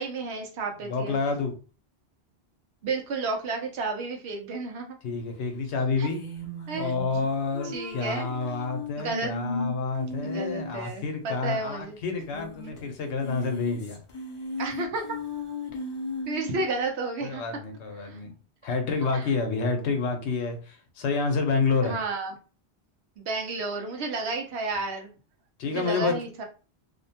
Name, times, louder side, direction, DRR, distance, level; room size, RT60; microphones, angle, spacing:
voice 1, 0.0-1.2 2.8-4.9 6.0-6.1 6.7-6.9 7.6-8.3 9.0-9.3 10.2-12.0 14.6-15.1 16.3-17.4 18.0-18.2 19.0-19.3 21.8-22.3 23.2-25.1 25.7-26.4, right 3 dB, 80° right, 3 dB, 0.9 m, -32 dB
voice 2, 0.8-1.5 5.0-6.2 6.7-14.0 17.2-18.3 18.6-22.0 25.6-26.2, left 4 dB, 90° left, 5 dB, 0.9 m, -29 dB
sound 1, 6.0-11.0 11.2-11.3 11.5-11.6 12.2-12.8 13.1-16.7, left 2 dB, 40° left, 0.4 m, -36 dB
2.6 x 2.1 x 2.7 m, 0.35 s
omnidirectional pair, 1.1 m